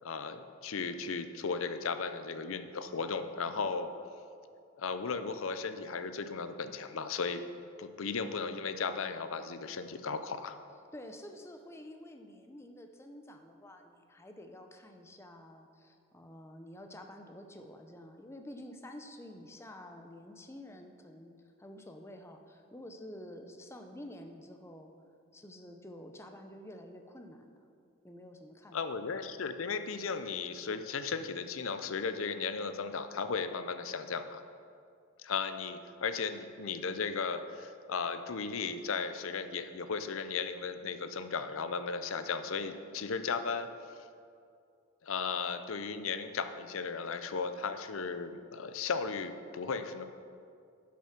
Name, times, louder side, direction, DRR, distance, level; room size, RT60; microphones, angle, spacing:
voice 1, 0.0-3.9 4.8-7.4 7.8-10.6 28.7-34.4 35.2-43.7 45.0-50.0, left 5 dB, 65° left, 9 dB, 0.6 m, -36 dB
voice 2, 10.9-24.9 25.3-27.6 28.0-28.8, left 1 dB, 10° left, 5 dB, 0.6 m, -49 dB
10.5 x 5.9 x 5.9 m, 2.4 s
head